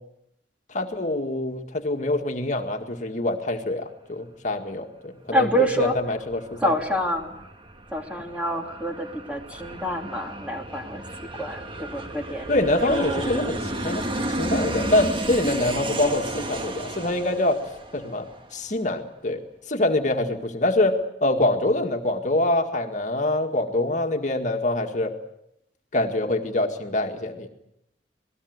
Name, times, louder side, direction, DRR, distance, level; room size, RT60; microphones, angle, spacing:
voice 1, 0.7-6.7 12.5-17.6 17.9-19.4 19.7-25.1 25.9-27.5, left 1 dB, 45° left, 4 dB, 2.0 m, -25 dB
voice 2, 5.3-5.9 6.6-7.4 7.9-11.0 11.4-12.5 12.9-13.3, equal, 10° right, 3 dB, 2.8 m, -27 dB
Aircraft, 5.5-18.7, right 1 dB, 30° right, 1.9 m, -33 dB
27.5 x 19.0 x 8.1 m, 0.79 s
head